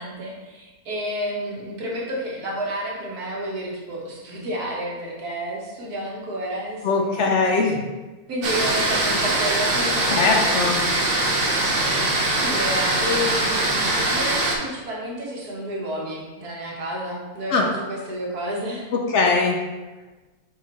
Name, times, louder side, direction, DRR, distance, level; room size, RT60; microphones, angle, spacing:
voice 1, 0.0-7.3 8.3-10.6 12.3-13.8 14.1-18.9, equal, 85° right, -3 dB, 1.9 m, -30 dB
voice 2, 6.8-7.8 10.1-10.8 17.5-17.6 18.9-19.6, left 4 dB, 60° left, 2 dB, 0.9 m, -20 dB
sound 1, 8.4-14.5, right 2 dB, 45° right, 1.0 m, -22 dB
7.6 x 4.3 x 3.1 m, 1.2 s
omnidirectional pair, 1.6 m